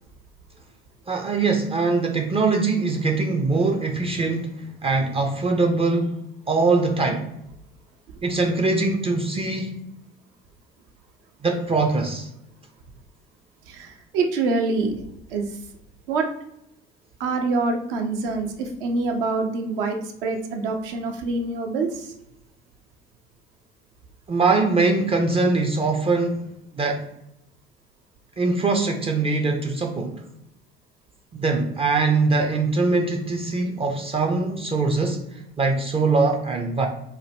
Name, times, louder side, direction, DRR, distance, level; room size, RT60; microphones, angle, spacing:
voice 1, 1.1-6.2 6.5-7.3 8.2-9.8 11.4-12.3 24.3-26.5 26.8-27.1 28.4-30.2 31.3-36.9, right 3 dB, 20° right, 0.4 m, -22 dB
voice 2, 13.7-15.0 15.3-15.6 16.1-16.3 17.2-22.1, right 3 dB, 70° right, 0.6 m, -25 dB
2.7 x 2.1 x 3.3 m
figure-of-eight pair, 55°, 29 cm